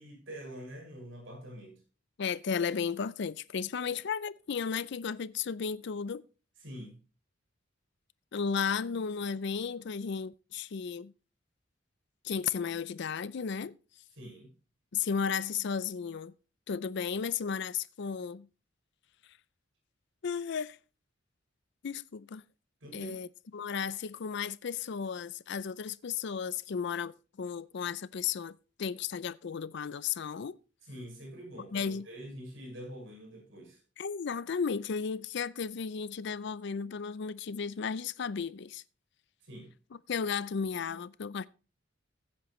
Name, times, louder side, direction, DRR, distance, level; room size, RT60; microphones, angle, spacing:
voice 1, 0.0-1.8 3.8-3.9 6.6-7.0 14.1-14.5 22.8-23.2 30.8-33.8 39.4-39.7, equal, 70° right, 6.3 m, -45 dB
voice 2, 2.2-6.2 8.3-11.1 12.2-13.7 14.9-16.3 16.7-18.5 20.2-20.8 21.8-22.4 22.9-23.3 23.5-30.6 31.7-32.1 34.0-38.8 40.1-41.5, left 6 dB, 60° left, 0.4 m, -34 dB
15.5 x 9.5 x 3.1 m
head